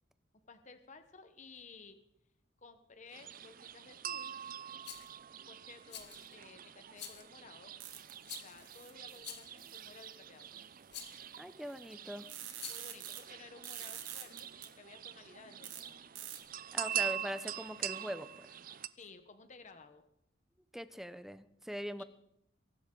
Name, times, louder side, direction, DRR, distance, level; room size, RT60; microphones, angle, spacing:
voice 1, 0.4-2.0 2.6-4.4 5.5-7.7 8.3-10.5 12.7-16.1 18.9-20.0 22.0-22.1, left 4 dB, 40° left, 8 dB, 1.1 m, -55 dB
sound 1, 3.1-18.9, right 10 dB, 45° right, 0.6 m, -44 dB
Rattle, 4.8-5.1 5.9-6.3 6.9-7.3 8.2-8.7 9.2-9.6 10.9-11.2 12.5-13.0, left 8 dB, 60° left, 1.9 m, -47 dB
sound 2, 7.8-8.2 8.6-9.2 9.6-10.1 11.3-11.4 11.6-13.2 13.6-14.7 15.6-15.8 16.2-16.4, right 10 dB, 85° right, 2.2 m, -46 dB
voice 2, 11.4-12.3 16.7-18.5 20.7-22.0, equal, ahead, 13 dB, 0.7 m, -42 dB
23.0 x 12.0 x 3.8 m, 0.76 s
head